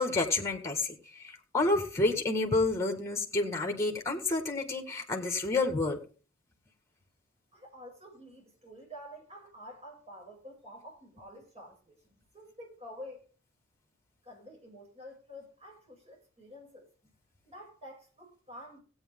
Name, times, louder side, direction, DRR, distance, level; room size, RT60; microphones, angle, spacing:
voice 1, 0.0-6.0, left 2 dB, 15° left, 1.8 m, -29 dB
voice 2, 7.5-13.2 14.2-16.9 17.4-18.8, equal, 30° right, 6.8 m, -49 dB
17.0 x 8.8 x 3.7 m
head